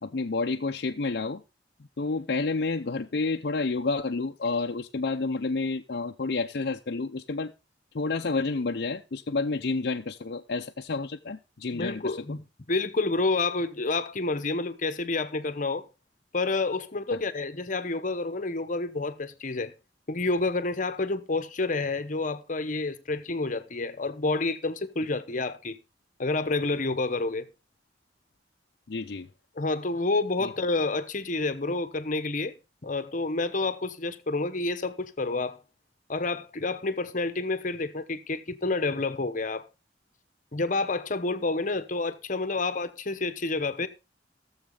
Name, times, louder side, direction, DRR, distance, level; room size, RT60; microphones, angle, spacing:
voice 1, 0.0-1.4 2.0-7.5 7.9-12.4 17.1-17.2 28.9-29.3 30.4-30.5, left 3 dB, 60° left, 0.6 m, -30 dB
voice 2, 11.7-12.4 12.7-15.9 16.3-19.7 20.1-25.8 26.2-27.5 29.6-32.5 32.8-35.6 36.1-39.6 40.5-43.9, left 3 dB, 45° left, 1.0 m, -29 dB
16.0 x 7.3 x 3.9 m
head